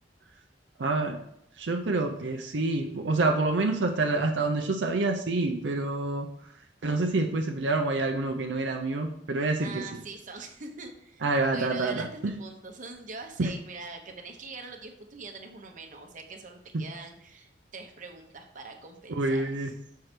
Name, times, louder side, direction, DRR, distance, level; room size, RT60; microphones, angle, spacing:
voice 1, 0.8-1.2 1.6-6.3 6.8-9.8 11.2-12.3 13.4-13.5 19.1-19.7, right 2 dB, 80° right, 2 dB, 0.6 m, -27 dB
voice 2, 9.6-11.2 11.5-19.7, right 3 dB, 45° right, 3 dB, 1.0 m, -43 dB
6.6 x 4.6 x 4.4 m, 0.75 s
head